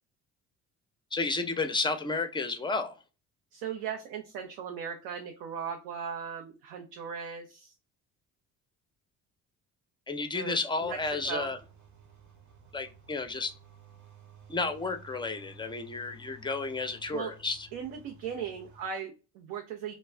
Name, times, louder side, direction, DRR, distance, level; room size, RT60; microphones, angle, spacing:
voice 1, 1.1-2.9 10.1-11.6 12.7-13.6 14.5-17.7, left 3 dB, 10° left, 0.5 m, -32 dB
voice 2, 3.5-7.7 10.3-11.0 11.2-11.5 17.1-17.3 17.7-19.9, right 7 dB, 80° right, 0.6 m, -38 dB
sound 1, 10.8-18.9, right 2 dB, 45° right, 0.9 m, -54 dB
2.3 x 2.1 x 3.2 m
supercardioid pair, 65°, 39 cm